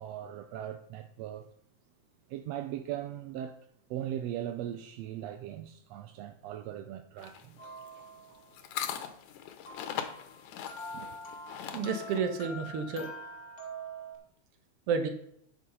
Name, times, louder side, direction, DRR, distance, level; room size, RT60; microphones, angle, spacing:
voice 1, 0.0-1.5 2.3-3.6 3.9-7.8 8.3-8.4 10.9-11.1, right 11 dB, 80° right, 1.6 m, -39 dB
sound 1, 7.2-12.2, left 9 dB, 80° left, 2.3 m, -40 dB
sound 2, 7.6-8.5 9.7-14.2, equal, 45° left, 2.2 m, -44 dB
voice 2, 11.7-13.1 14.9-15.1, right 5 dB, 60° right, 1.8 m, -30 dB
9.1 x 6.3 x 5.5 m
omnidirectional pair, 3.4 m